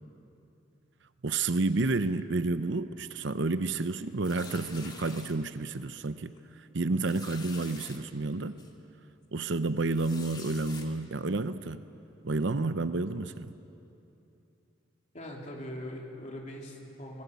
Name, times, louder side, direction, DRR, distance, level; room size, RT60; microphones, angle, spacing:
voice 1, 1.2-6.3 6.7-8.6 9.3-11.8 12.2-13.5, right 3 dB, 65° right, 12 dB, 0.8 m, -30 dB
sound 1, 4.2-5.3 5.9-6.1 6.4-6.5 7.0-8.0 8.6-8.7 9.9-10.9, left 4 dB, 20° left, 2.1 m, -47 dB
voice 2, 6.7-7.1 15.1-17.2, equal, 40° left, -1 dB, 3.4 m, -42 dB
25.0 x 20.5 x 8.3 m, 2.8 s
head